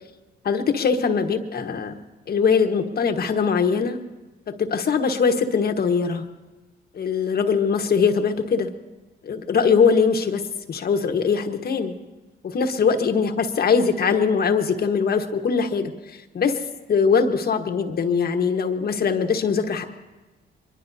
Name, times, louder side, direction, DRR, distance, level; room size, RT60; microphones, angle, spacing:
voice 1, 0.4-2.0 2.3-4.0 4.5-6.2 6.9-8.7 9.2-10.4 10.7-11.9 12.4-16.6 16.9-19.9, left 5 dB, 50° left, 6 dB, 1.3 m, -21 dB
23.5 x 22.0 x 2.8 m, 1.2 s
cardioid pair, 90°, 20 cm